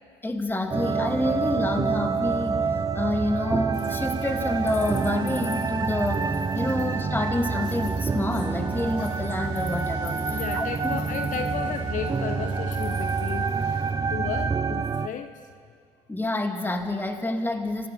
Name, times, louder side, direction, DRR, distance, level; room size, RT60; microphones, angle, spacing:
voice 1, 0.2-2.6 2.9-10.9 16.1-17.9, left 2 dB, 15° left, 4 dB, 2.6 m, -28 dB
sound 1, 0.7-15.1, right 5 dB, 25° right, 0.9 m, -27 dB
sound 2, 3.7-13.9, left 6 dB, 80° left, 2.6 m, -44 dB
voice 2, 10.2-13.8 14.1-15.4, left 9 dB, 55° left, 8 dB, 1.2 m, -34 dB
26.5 x 17.0 x 7.0 m, 2.2 s
supercardioid pair, 75°, 15 cm